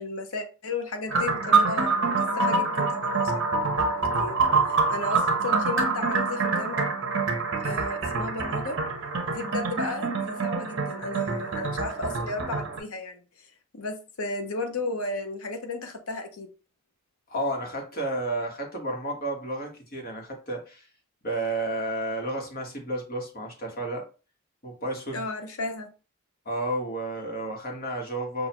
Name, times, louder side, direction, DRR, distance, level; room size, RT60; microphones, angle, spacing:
voice 1, 0.0-3.5 4.2-4.4 4.6-6.9 7.6-8.8 9.3-16.5 25.1-25.9, left 2 dB, 75° left, 0.9 m, -34 dB
sound 1, 1.1-12.8, right 4 dB, 55° right, 0.9 m, -26 dB
voice 2, 17.3-20.9 21.2-24.0 24.6-25.3 26.4-28.5, right 1 dB, 40° left, 1.3 m, -31 dB
6.0 x 2.5 x 2.9 m
head